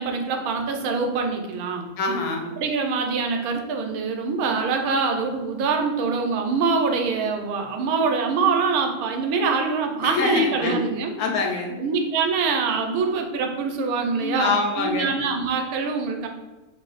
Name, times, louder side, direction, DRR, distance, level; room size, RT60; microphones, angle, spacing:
voice 1, 0.0-1.9 2.6-11.1 11.8-16.3, right 4 dB, 90° right, 3 dB, 1.1 m, -24 dB
voice 2, 2.0-2.5 10.0-10.8 11.2-11.8 14.2-15.1, left 4 dB, 90° left, 2 dB, 1.1 m, -24 dB
2.9 x 2.0 x 3.9 m, 1.2 s
omnidirectional pair, 1.5 m